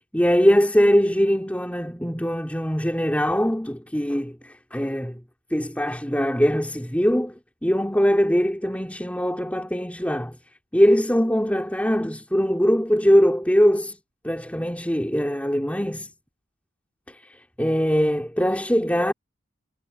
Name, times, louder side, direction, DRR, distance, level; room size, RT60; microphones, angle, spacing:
voice 1, 0.1-5.2 5.5-7.3 7.6-10.4 10.7-14.0 14.2-16.1 17.1-19.1, equal, 5° left, 3.2 m, -22 dB
head